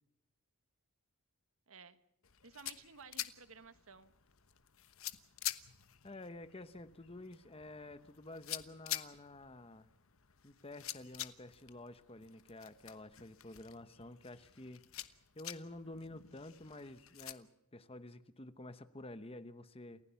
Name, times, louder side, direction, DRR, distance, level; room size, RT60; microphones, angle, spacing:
voice 1, 1.7-2.0 2.4-4.1, right 5 dB, 65° right, 11 dB, 1.4 m, -55 dB
sound 1, 2.2-17.3, left 13 dB, 65° left, 1.1 m, -48 dB
voice 2, 6.0-9.9 10.4-20.0, left 2 dB, 25° left, 12 dB, 1.0 m, -50 dB
29.0 x 16.0 x 7.0 m, 0.80 s
head